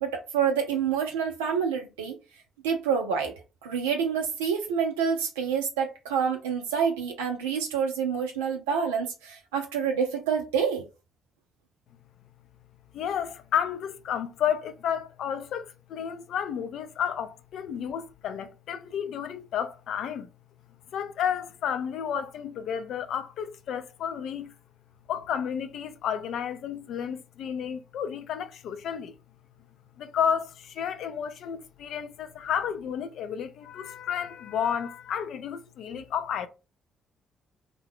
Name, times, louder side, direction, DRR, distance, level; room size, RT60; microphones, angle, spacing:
voice 1, 0.0-2.2 2.6-10.9, right 7 dB, 75° right, 0.4 m, -27 dB
voice 2, 12.9-20.3 20.9-24.5 25.1-29.1 30.0-36.5, left 8 dB, 60° left, 0.4 m, -31 dB
2.6 x 2.1 x 3.4 m
figure-of-eight pair, 45°, 0 cm